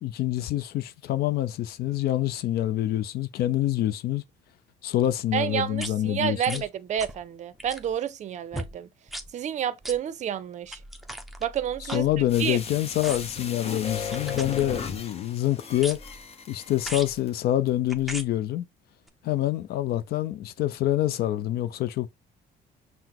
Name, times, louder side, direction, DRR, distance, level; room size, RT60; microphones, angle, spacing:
voice 1, 0.0-4.2 4.8-6.6 11.9-16.0 16.5-18.7 19.2-22.1, left 13 dB, 65° left, 0.4 m, -26 dB
voice 2, 5.3-8.9 9.3-10.8 11.4-12.1 12.4-12.6, right 9 dB, 45° right, 0.5 m, -29 dB
sound 1, 5.8-5.9 6.4-6.7 7.0-7.2 7.5-7.9 8.5-8.7 9.1-9.3 9.8-10.0 10.7-12.6 13.0-13.4 14.1-15.1 15.8-16.2 16.8-17.2 17.9-18.3 19.1-19.2, equal, ahead, 0.6 m, -38 dB
sound 2, 12.3-17.3 17.7-17.8, left 5 dB, 35° left, 0.8 m, -36 dB
5.7 x 2.0 x 2.9 m
cardioid pair, 110°, 17 cm